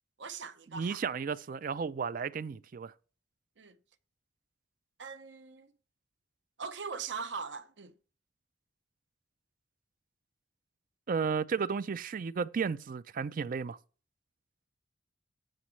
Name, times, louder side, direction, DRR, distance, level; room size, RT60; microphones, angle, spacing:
voice 1, 0.2-1.0 3.6-3.8 5.0-5.7 6.6-7.9, right 5 dB, 65° right, 0.7 m, -41 dB
voice 2, 0.7-2.9 11.1-13.8, right 5 dB, 45° right, 0.4 m, -33 dB
14.5 x 6.2 x 3.2 m
head